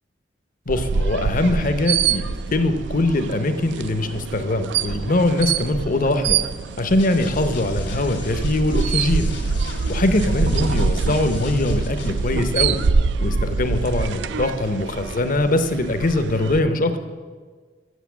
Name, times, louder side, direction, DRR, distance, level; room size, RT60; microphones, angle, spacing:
voice 1, 0.7-2.2 2.5-6.4 6.8-9.3 9.9-12.8 13.2-17.0, left 2 dB, 50° left, 9 dB, 0.8 m, -22 dB
sound 1, 0.7-16.6, right 5 dB, 70° right, 0.4 m, -25 dB
sound 2, 7.0-12.3, left 3 dB, 75° left, 1.8 m, -37 dB
8.2 x 6.9 x 8.3 m, 1.5 s
head